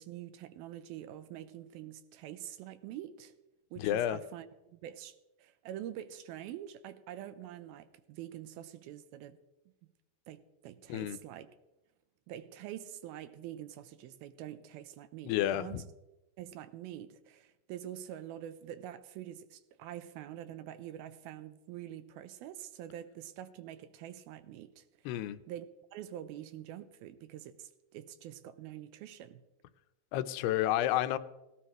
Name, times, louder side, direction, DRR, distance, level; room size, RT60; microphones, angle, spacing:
voice 1, 0.0-3.3 3.7-9.4 10.3-11.6 12.3-15.9 16.4-24.9 25.5-29.4, right 11 dB, 80° right, 2.5 m, -46 dB
voice 2, 3.8-4.2 10.9-11.2 15.3-15.8 25.1-25.4 30.1-31.2, left 13 dB, 85° left, 2.8 m, -30 dB
18.0 x 16.5 x 3.1 m
omnidirectional pair, 4.6 m